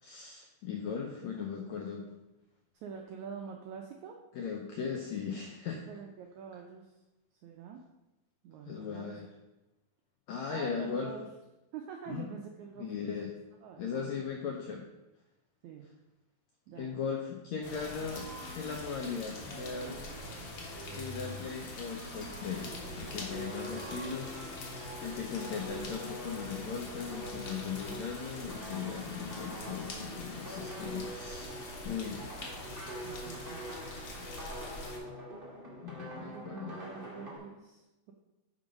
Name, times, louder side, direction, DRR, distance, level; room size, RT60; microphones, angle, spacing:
voice 1, 0.0-2.1 4.3-5.8 8.7-9.3 10.3-11.1 12.1-12.3 12.8-13.3 13.8-14.8 16.8-18.3 18.5-20.0 20.9-22.7 23.0-24.3 25.0-32.2 35.8-36.8, left 6 dB, 85° left, 1 dB, 1.6 m, -38 dB
voice 2, 2.7-4.2 5.3-5.4 5.7-6.9 7.4-7.8 8.4-9.2 10.5-11.3 11.7-12.9 13.6-14.4 15.6-15.9 16.7-17.0 32.1-32.5 33.0-33.6 36.2-38.1, right 6 dB, 85° right, 2 dB, 1.6 m, -46 dB
sound 1, 17.6-35.0, left 2 dB, 55° left, 2.0 m, -44 dB
sound 2, 17.6-25.0, equal, 50° right, 3.7 m, -48 dB
sound 3, 22.6-37.4, equal, 20° right, 1.4 m, -44 dB
10.5 x 4.0 x 5.2 m, 0.98 s
omnidirectional pair, 4.2 m